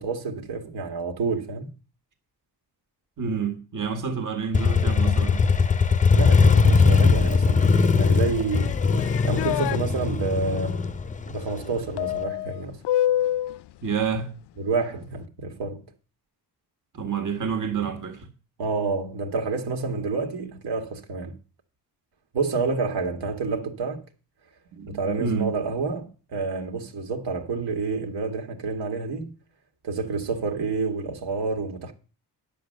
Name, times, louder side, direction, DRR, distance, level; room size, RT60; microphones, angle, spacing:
voice 1, 0.0-1.7 6.1-8.7 9.2-10.8 11.3-12.8 14.6-15.8 18.6-21.3 22.3-24.0 24.9-29.3 29.8-31.9, right 4 dB, 80° right, 2.0 m, -29 dB
voice 2, 3.2-5.5 13.8-14.3 16.9-18.3 24.7-25.5, right 6 dB, 50° right, 1.7 m, -28 dB
Motorcycle, 4.5-12.2, left 5 dB, 20° left, 0.5 m, -20 dB
sound 1, 8.5-9.8 12.0-13.6, left 12 dB, 80° left, 0.5 m, -26 dB
9.9 x 7.4 x 6.5 m
cardioid pair, 115°, 40 cm